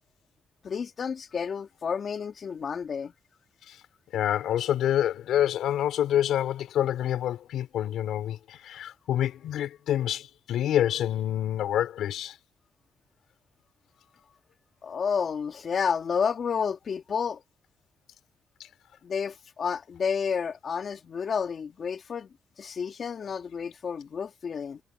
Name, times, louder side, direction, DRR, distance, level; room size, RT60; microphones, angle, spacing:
voice 1, 0.6-3.1 14.8-17.4 19.0-22.3 22.6-24.8, left 6 dB, 45° left, 2.7 m, -30 dB
voice 2, 4.1-12.4, left 11 dB, 75° left, 4.4 m, -27 dB
cardioid pair, 125°, 0 cm